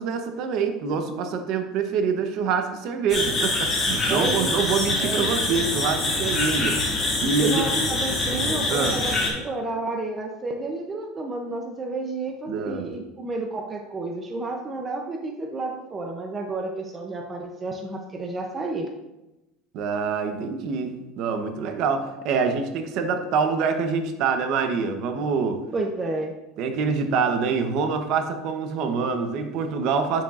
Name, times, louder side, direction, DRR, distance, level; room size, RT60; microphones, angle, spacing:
voice 1, 0.0-6.8 7.2-7.7 8.7-9.1 12.5-12.9 19.7-25.6 26.6-30.2, right 5 dB, 50° right, 6 dB, 0.9 m, -25 dB
sound 1, 3.1-9.3, left 2 dB, 25° left, 2.1 m, -25 dB
voice 2, 4.1-4.5 5.0-5.2 7.4-18.9 25.7-26.3, right 2 dB, 20° right, 2 dB, 0.6 m, -31 dB
8.6 x 7.2 x 2.5 m, 0.98 s
cardioid pair, 165°, 0 cm